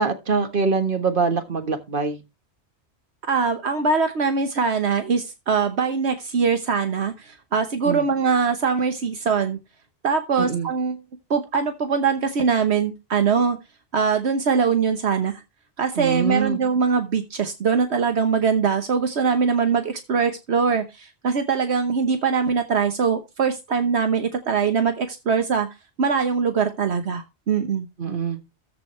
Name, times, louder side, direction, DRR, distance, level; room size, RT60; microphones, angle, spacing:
voice 1, 0.0-2.2 7.8-8.0 10.4-10.7 15.9-16.6 28.0-28.4, right 5 dB, 50° right, 1.7 m, -24 dB
voice 2, 3.3-9.6 10.0-11.0 11.3-13.6 13.9-15.4 15.8-25.7 26.0-27.9, right 5 dB, 75° right, 1.3 m, -22 dB
14.0 x 5.1 x 4.4 m
omnidirectional pair, 1.1 m